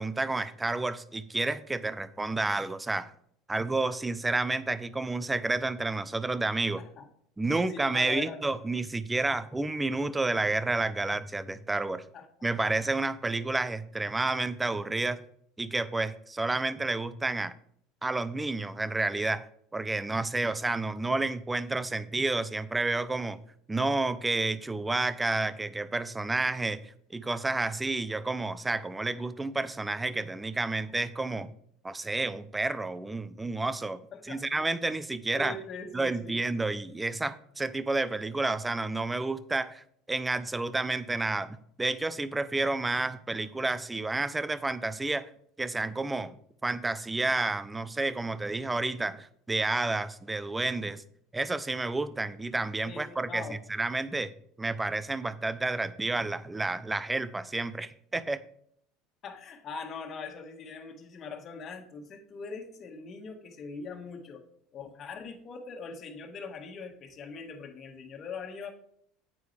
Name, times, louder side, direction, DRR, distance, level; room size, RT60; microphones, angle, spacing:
voice 1, 0.0-3.1 3.5-6.8 7.4-12.0 12.4-15.2 15.6-17.5 18.0-19.5 19.7-23.4 23.7-31.5 31.8-34.0 34.3-35.6 35.9-45.3 45.6-46.3 46.6-51.0 51.3-54.3 54.6-58.4, right 2 dB, 15° right, 15 dB, 0.7 m, -30 dB
voice 2, 6.8-7.1 7.5-8.4 12.1-12.3 34.1-34.7 35.4-36.4 52.8-53.6 59.2-64.4 64.7-68.7, left 4 dB, 40° left, 3 dB, 1.8 m, -42 dB
9.0 x 8.6 x 3.4 m, 0.66 s
hypercardioid pair, 75°, 0 cm